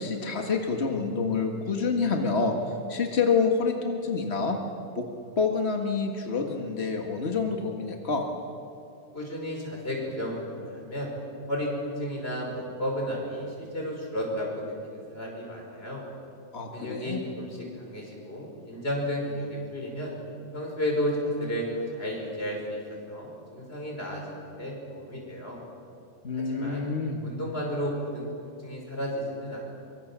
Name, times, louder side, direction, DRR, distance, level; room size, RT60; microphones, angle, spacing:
voice 1, 0.0-4.6 4.9-5.1 5.4-8.2 16.5-17.2 26.2-27.3, left 4 dB, 45° left, 3 dB, 0.8 m, -27 dB
voice 2, 9.1-11.1 11.5-16.0 16.7-20.1 20.5-25.6 26.4-26.9 27.2-29.6, equal, 15° left, -1 dB, 5.4 m, -33 dB
24.0 x 24.0 x 7.4 m, 2.5 s
omnidirectional pair, 3.7 m